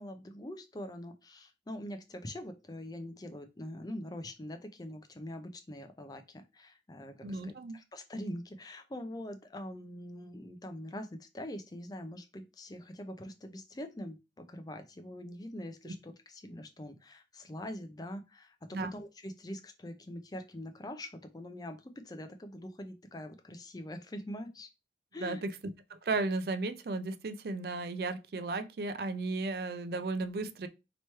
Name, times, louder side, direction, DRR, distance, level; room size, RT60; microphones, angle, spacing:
voice 1, 0.0-24.7 25.1-25.4, left 1 dB, 20° left, 0.5 m, -44 dB
voice 2, 7.2-7.8 15.9-16.0 18.7-18.9 25.2-25.5 25.9-30.7, right 3 dB, 55° right, 0.4 m, -34 dB
3.0 x 2.9 x 4.5 m
head